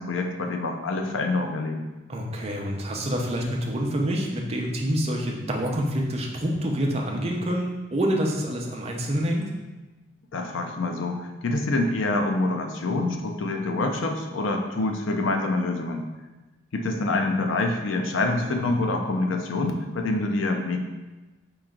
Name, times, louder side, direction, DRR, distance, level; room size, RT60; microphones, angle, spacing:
voice 1, 0.0-1.8 10.3-16.1 16.7-20.8, left 2 dB, 80° left, 4 dB, 0.5 m, -26 dB
voice 2, 2.1-9.5 18.4-18.7, equal, 35° right, 0 dB, 0.6 m, -27 dB
4.3 x 3.1 x 3.7 m, 1.1 s
head